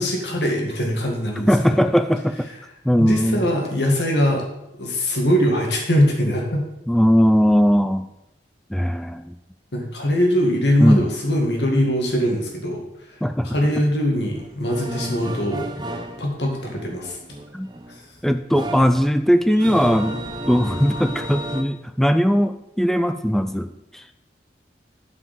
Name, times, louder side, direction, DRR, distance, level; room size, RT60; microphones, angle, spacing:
voice 1, 0.0-1.8 3.0-4.4 4.8-6.6 9.7-12.8 13.1-15.6 16.2-17.2 17.9-18.0, equal, 75° left, 1 dB, 2.0 m, -22 dB
voice 2, 1.5-2.5 2.8-3.5 6.9-8.1 8.7-9.4 10.8-11.0 13.2-13.5 17.5-17.7 18.2-20.2 20.5-24.0, equal, ahead, 9 dB, 0.3 m, -19 dB
Band in the Park, 14.4-21.6, right 1 dB, 25° right, 0.8 m, -32 dB
11.0 x 5.0 x 5.4 m, 0.86 s
head